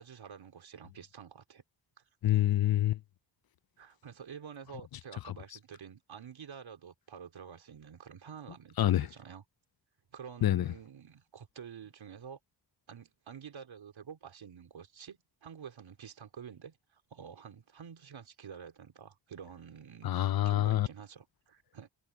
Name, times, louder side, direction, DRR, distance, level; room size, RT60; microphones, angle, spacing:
voice 1, 0.0-1.6 3.8-9.4 10.1-12.4 12.9-20.1 20.5-21.9, right 7 dB, 90° right, 3.5 m, -49 dB
voice 2, 2.2-3.0 5.3-5.4 8.8-9.1 10.4-10.7 20.0-20.9, left 13 dB, 55° left, 0.5 m, -27 dB
cardioid pair, 55°, 45 cm